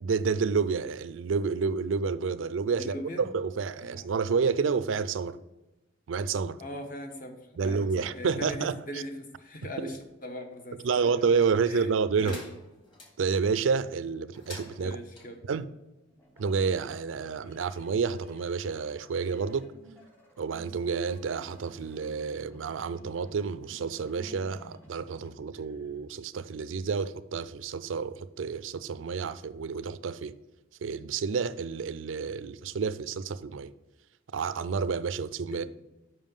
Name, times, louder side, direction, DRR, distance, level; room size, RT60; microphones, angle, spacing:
voice 1, 0.0-5.4 6.1-6.6 7.6-9.0 9.8-9.9 10.8-12.4 13.2-15.0 15.5-15.7 16.4-19.7 20.4-30.4 30.8-33.7 34.3-35.7, right 5 dB, 90° right, 0.4 m, -29 dB
voice 2, 2.8-3.2 3.8-4.1 6.6-11.2 11.7-11.8 12.2-12.4 14.8-15.4 35.5-35.7, equal, 45° left, 1.1 m, -40 dB
sound 1, 12.2-13.1 14.3-15.3, left 2 dB, 25° left, 1.9 m, -46 dB
sound 2, 16.1-25.3, equal, 10° left, 1.1 m, -55 dB
7.3 x 5.5 x 5.4 m
head